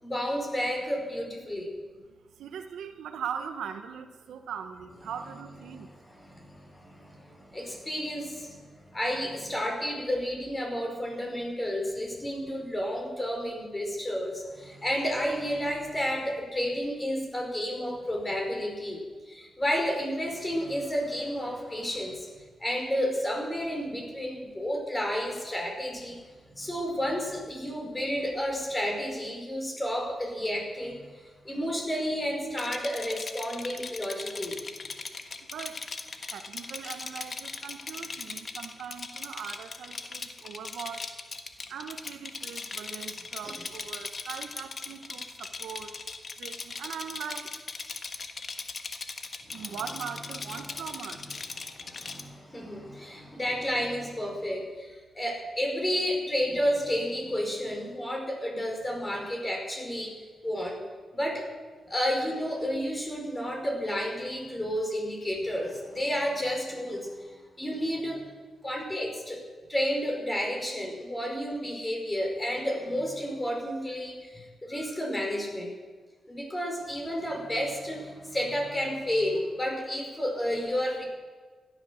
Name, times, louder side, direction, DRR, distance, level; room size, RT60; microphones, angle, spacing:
voice 1, 0.0-1.7 5.7-26.2 26.6-34.6 43.4-43.7 49.5-49.8 50.6-50.7 51.1-51.3 51.7-60.1 60.4-60.8 61.1-61.5 61.9-68.2 68.6-69.4 69.7-75.7 76.3-81.0, equal, 20° left, 1 dB, 5.2 m, -31 dB
voice 2, 2.4-5.9 35.5-35.9 36.3-41.1 41.7-45.9 46.4-47.6 49.5-51.4, right 7 dB, 85° right, 8 dB, 1.1 m, -40 dB
Rattle, 32.5-52.2, left 4 dB, 50° left, 1.4 m, -39 dB
16.5 x 12.0 x 6.5 m, 1.4 s
cardioid pair, 65°, 0 cm